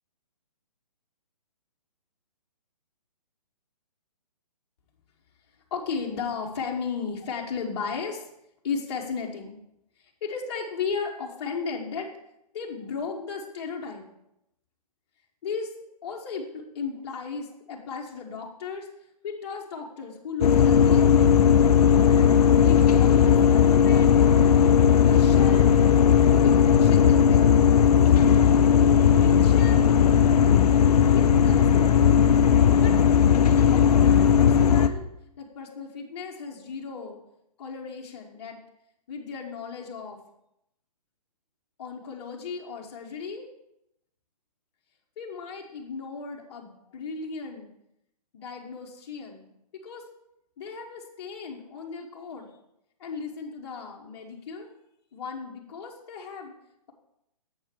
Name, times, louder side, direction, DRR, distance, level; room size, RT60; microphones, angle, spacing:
voice 1, 5.7-8.3 8.6-9.6 10.0-12.1 12.5-14.0 15.4-15.7 16.0-18.9 19.2-21.3 22.6-24.6 25.0-25.7 26.4-28.0 29.2-29.9 31.0-31.9 32.8-33.0 33.5-35.0 35.4-37.2 37.6-38.6 39.1-40.2 41.8-43.4 45.2-47.7 48.3-49.5 49.8-50.0 50.6-52.5 53.0-54.7 55.1-56.5, left 5 dB, 40° left, -1 dB, 1.4 m, -35 dB
sound 1, 20.4-34.9, left 8 dB, 65° left, 0.7 m, -17 dB
7.3 x 4.5 x 6.9 m, 0.81 s
hypercardioid pair, 150°, 21 cm